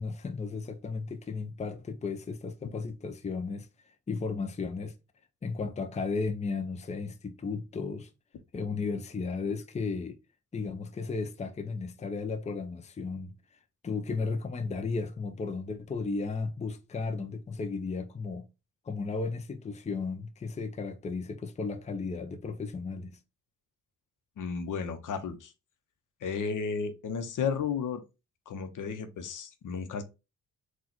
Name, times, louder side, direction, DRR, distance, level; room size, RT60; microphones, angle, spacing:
voice 1, 0.0-4.9 5.4-8.1 8.5-10.2 10.5-13.3 13.8-18.4 18.8-23.2, left 4 dB, 20° left, 0.6 m, -34 dB
voice 2, 24.4-25.5 26.2-28.0 28.5-30.0, left 6 dB, 60° left, 0.9 m, -33 dB
3.9 x 2.4 x 4.3 m
cardioid pair, 70°, 35 cm